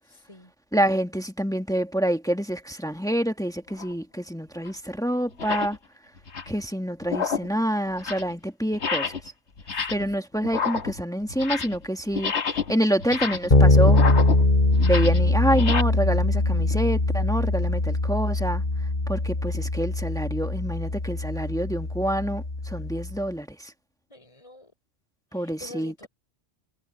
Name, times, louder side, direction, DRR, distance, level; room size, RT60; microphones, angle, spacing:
voice 1, 0.0-0.5 9.7-10.2 24.1-24.7 25.3-26.1, left 1 dB, 30° left, 5.2 m, -47 dB
voice 2, 0.7-5.8 6.5-9.1 9.9-12.3 12.7-14.0 14.8-18.6 19.1-23.7 25.3-26.1, equal, 5° left, 1.4 m, -27 dB
sound 1, 3.7-3.9 4.7-4.8 5.3-5.8 6.2-6.6 7.0-7.6 7.9-8.3 8.7-9.3 9.6-10.1 10.4-11.9 12.1-15.8, left 6 dB, 75° left, 1.7 m, -30 dB
Bass guitar, 13.5-23.2, left 2 dB, 45° left, 2.2 m, -22 dB
omnidirectional pair, 1.2 m